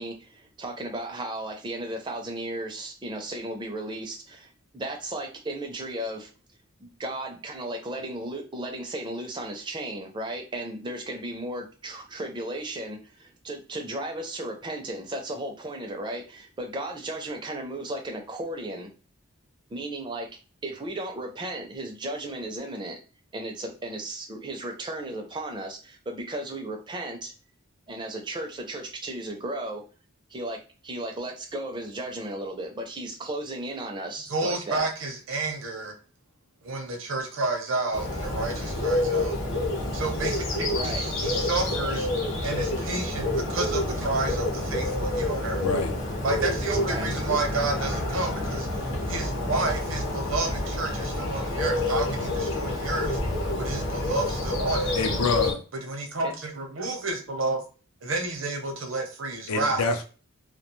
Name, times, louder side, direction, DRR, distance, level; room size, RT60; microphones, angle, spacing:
voice 1, 0.0-6.3 7.0-18.9 19.7-20.3 20.6-23.0 23.3-27.3 27.9-29.8 30.3-30.6 30.8-34.9 40.7-41.1 46.7-47.1 56.2-56.3, right 1 dB, 20° right, 0.4 m, -35 dB
voice 2, 34.3-35.9 36.6-39.4 39.9-42.1 42.4-45.6 46.2-48.6 49.1-53.2 53.5-54.9 55.8-57.6 58.0-59.9, right 3 dB, 65° right, 0.7 m, -30 dB
Bird, 37.9-55.5, left 1 dB, 60° left, 0.8 m, -28 dB
voice 3, 45.6-45.9 54.9-55.6 59.5-60.0, left 4 dB, 85° left, 0.5 m, -26 dB
2.3 x 2.2 x 2.9 m
head